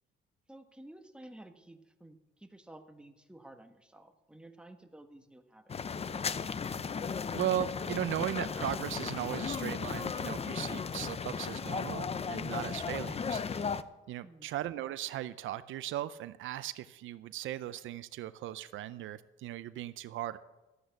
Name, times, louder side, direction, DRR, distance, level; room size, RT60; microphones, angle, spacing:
voice 1, 0.5-6.0 14.2-14.5, right 1 dB, 5° right, 6 dB, 1.4 m, -53 dB
sound 1, 5.7-13.8, left 6 dB, 30° left, 0.6 m, -35 dB
voice 2, 7.3-13.7 14.1-20.4, right 12 dB, 80° right, 15 dB, 0.5 m, -37 dB
12.5 x 8.7 x 8.0 m, 1.1 s
cardioid pair, 90°, 20 cm